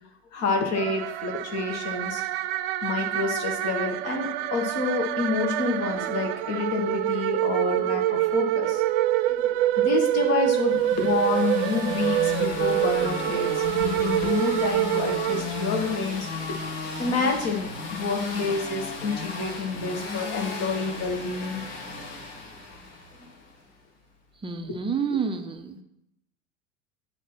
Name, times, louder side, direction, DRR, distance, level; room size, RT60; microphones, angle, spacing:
voice 1, 0.3-2.2 2.8-8.8 9.5-16.6 17.0-21.6 24.5-25.2, left 4 dB, 40° left, 3 dB, 1.8 m, -28 dB
sound 1, 0.7-16.0, right 14 dB, 40° right, 0.4 m, -26 dB
sound 2, 10.5-23.4, left 4 dB, 60° left, 1.9 m, -35 dB
voice 2, 24.4-25.8, right 6 dB, 15° right, 7 dB, 0.7 m, -29 dB
9.0 x 4.3 x 6.0 m, 0.82 s
figure-of-eight pair, 85°, 40 cm